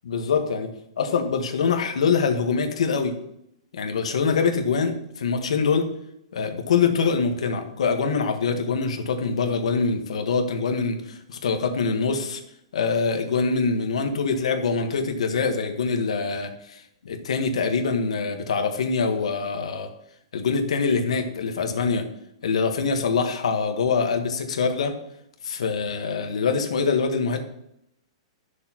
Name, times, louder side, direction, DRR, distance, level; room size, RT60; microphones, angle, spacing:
voice 1, 0.0-0.7 1.0-3.1 3.7-5.9 6.3-12.4 12.7-19.9 20.3-22.0 22.4-24.9 25.4-27.4, left 5 dB, 85° left, 5 dB, 1.4 m, -24 dB
12.5 x 6.5 x 3.0 m, 0.77 s
hypercardioid pair, 170°, 3 cm